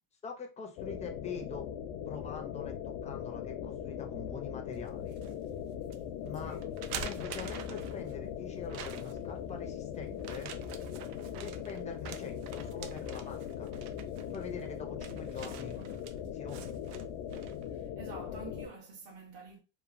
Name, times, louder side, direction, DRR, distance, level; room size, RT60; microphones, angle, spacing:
voice 1, 0.2-1.7 2.1-5.2 6.1-6.6 7.0-10.5 11.4-13.8 14.3-15.7 16.3-16.7, left 5 dB, 15° left, 0.4 m, -44 dB
sound 1, 0.8-18.7, left 9 dB, 85° left, 0.6 m, -40 dB
sound 2, 4.7-5.3 5.9-6.0 6.6-8.1 8.7-9.3 10.2-17.7, right 8 dB, 75° right, 0.6 m, -46 dB
voice 2, 6.4-6.7 15.4-16.0 17.7-19.6, right 4 dB, 55° right, 1.0 m, -49 dB
2.9 x 2.1 x 2.4 m
cardioid pair, 125°, 50 cm